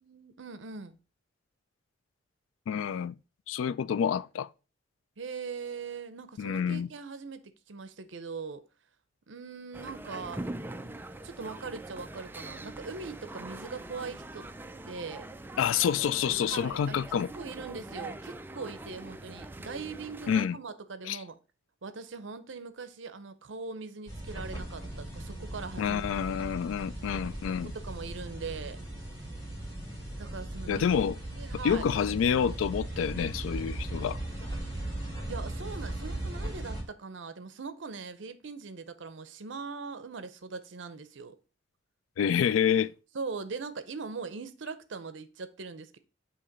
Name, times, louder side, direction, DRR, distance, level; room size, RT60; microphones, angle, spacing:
voice 1, 0.0-1.0 5.2-8.6 9.3-10.5 10.8-11.0 11.2-14.5 14.9-15.3 16.5-21.4 21.8-26.4 27.7-28.8 30.2-30.8 31.3-31.8 35.3-41.4 43.1-46.0, right 4 dB, 70° right, 0.6 m, -41 dB
voice 2, 2.7-3.2 3.5-4.5 6.4-6.9 15.6-17.3 20.3-20.6 21.1-21.2 25.8-27.7 30.7-31.2 31.6-34.2 42.2-42.9, left 8 dB, 90° left, 0.3 m, -28 dB
sound 1, 9.7-20.5, right 2 dB, 10° right, 0.3 m, -43 dB
sound 2, 24.1-36.8, right 1 dB, 20° left, 2.5 m, -38 dB
8.4 x 2.9 x 5.2 m
head